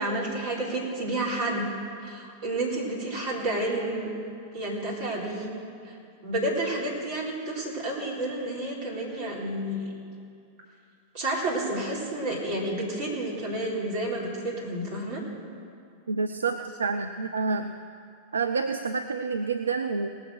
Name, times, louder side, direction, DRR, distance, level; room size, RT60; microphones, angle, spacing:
voice 1, 0.0-1.7 2.0-4.1 4.5-5.5 5.8-6.0 6.2-9.8 11.1-15.2, right 1 dB, 50° right, -4 dB, 4.0 m, -30 dB
voice 2, 16.1-17.7 18.3-20.1, right 4 dB, 75° right, 8 dB, 0.4 m, -28 dB
19.0 x 7.3 x 6.3 m, 2.4 s
figure-of-eight pair, 90°, 0 cm